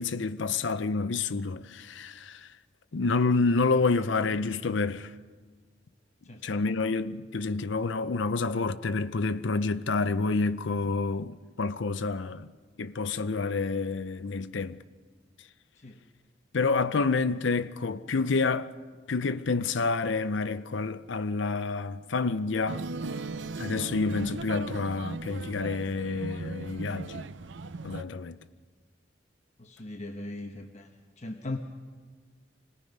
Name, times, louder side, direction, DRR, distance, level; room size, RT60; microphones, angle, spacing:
voice 1, 0.0-2.5 2.9-5.1 6.4-12.5 12.8-14.8 16.5-18.7 19.1-22.8 23.6-27.2 27.8-28.4, left 4 dB, 75° left, 0.6 m, -28 dB
sound 1, 22.7-28.0, right 3 dB, 70° right, 0.6 m, -38 dB
voice 2, 29.6-30.9 31.2-31.6, left 2 dB, 40° left, 1.1 m, -38 dB
25.5 x 19.0 x 5.4 m
head